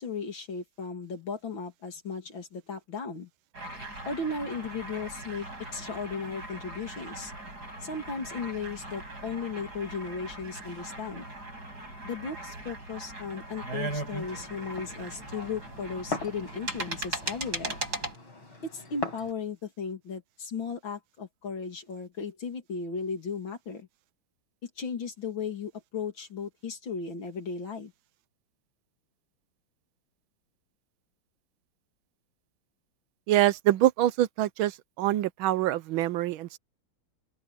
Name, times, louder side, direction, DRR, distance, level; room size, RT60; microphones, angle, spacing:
voice 1, 0.0-3.3 4.1-5.5 5.7-7.3 7.8-11.3 12.0-17.8 18.6-23.9 24.6-27.9, left 5 dB, 70° left, 3.6 m, -36 dB
sound 1, 3.5-18.2, right 2 dB, 50° right, 8.8 m, -39 dB
Glass, 14.2-19.3, left 4 dB, 85° left, 6.9 m, -41 dB
voice 2, 33.3-36.6, right 14 dB, 80° right, 1.5 m, -25 dB
open air
omnidirectional pair, 2.2 m